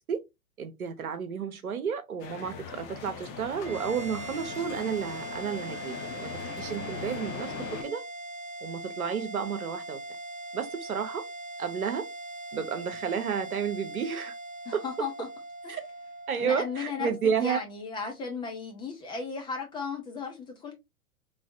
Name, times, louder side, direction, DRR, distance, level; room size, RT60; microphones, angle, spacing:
voice 1, 0.6-7.5 7.8-8.0 8.6-10.0 10.5-11.2 11.6-12.1 12.5-14.3 14.7-14.8 15.7-15.8 16.3-17.6, right 7 dB, 75° right, 0.8 m, -31 dB
sound 1, 2.2-7.8, left 5 dB, 35° left, 0.9 m, -40 dB
sound 2, 3.6-18.2, right 2 dB, 20° right, 0.7 m, -41 dB
voice 2, 14.6-15.3 15.6-15.8 16.4-20.7, left 5 dB, 10° left, 0.5 m, -35 dB
3.3 x 3.1 x 2.6 m
figure-of-eight pair, 100°, 43 cm